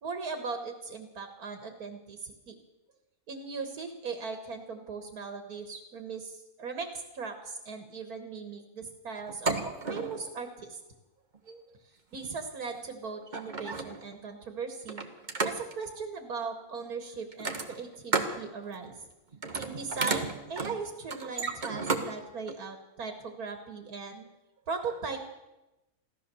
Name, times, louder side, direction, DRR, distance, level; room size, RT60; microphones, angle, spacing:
voice 1, 0.0-2.6 3.3-9.6 9.9-10.8 11.8-15.0 15.4-19.0 19.6-24.3 24.7-25.2, right 4 dB, 80° right, 6 dB, 2.0 m, -38 dB
sound 1, 9.3-10.2 11.3-11.6 12.7-12.8 13.2-14.1 14.9-15.8 17.3-18.4 18.7-19.0 19.3-22.1 22.5-22.6, right 4 dB, 30° right, 1.3 m, -33 dB
16.0 x 13.0 x 6.9 m, 0.99 s
omnidirectional pair, 1.6 m